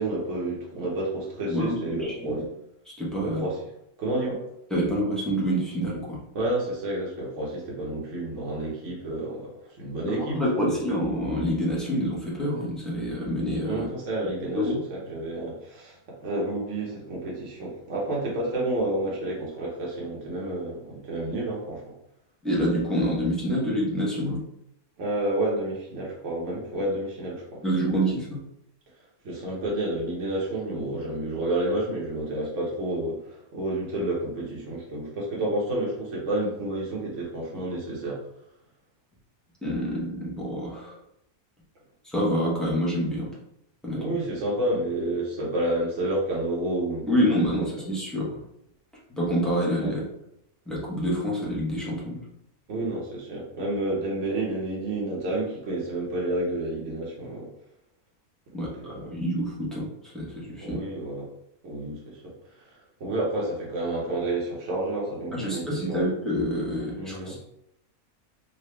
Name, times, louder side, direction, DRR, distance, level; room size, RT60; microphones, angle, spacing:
voice 1, 0.0-2.4 3.2-3.6 4.0-4.4 6.3-9.5 9.8-10.8 13.6-21.8 25.0-27.6 29.2-38.2 43.9-47.6 49.8-49.9 52.7-57.5 58.6-59.2 60.6-61.3 61.6-62.2 62.5-66.1 67.0-67.4, right 1 dB, 55° right, -4 dB, 1.3 m, -30 dB
voice 2, 1.5-2.4 3.0-3.4 4.7-6.2 10.1-13.8 14.5-14.8 22.4-24.4 27.6-28.4 39.6-40.9 42.0-43.3 43.8-44.0 47.1-48.4 49.2-50.0 50.7-52.2 58.5-59.9 60.1-60.8 65.3-67.4, equal, ahead, -6 dB, 0.8 m, -27 dB
3.9 x 2.5 x 3.3 m, 0.78 s
omnidirectional pair, 1.6 m